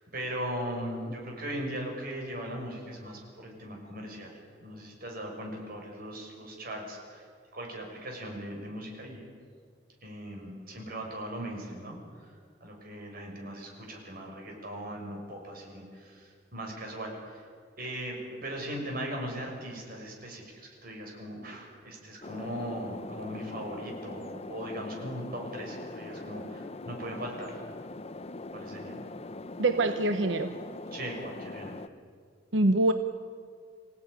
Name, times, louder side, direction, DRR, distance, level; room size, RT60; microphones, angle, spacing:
voice 1, 0.1-9.2 10.0-17.5 17.8-27.6 28.5-29.0 30.9-31.8, equal, 55° right, 1 dB, 6.3 m, -39 dB
sound 1, 22.2-31.9, left 2 dB, 35° left, 0.8 m, -42 dB
voice 2, 29.6-30.6 32.5-32.9, right 2 dB, 85° right, 8 dB, 1.0 m, -24 dB
26.0 x 17.0 x 9.8 m, 2.1 s
head